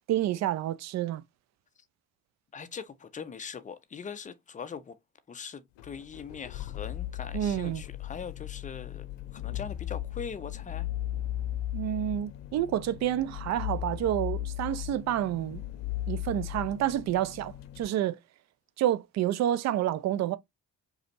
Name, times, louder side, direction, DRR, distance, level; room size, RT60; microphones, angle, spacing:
voice 1, 0.1-1.2 7.3-7.8 11.7-15.6 16.1-18.2 18.8-20.4, right 12 dB, 35° right, 0.4 m, -29 dB
voice 2, 2.5-5.0 5.3-9.0 9.3-10.9, left 6 dB, 15° left, 0.5 m, -41 dB
sound 1, 5.8-17.9, left 13 dB, 55° left, 0.7 m, -37 dB
4.9 x 2.6 x 2.9 m
figure-of-eight pair, 45°, 50 cm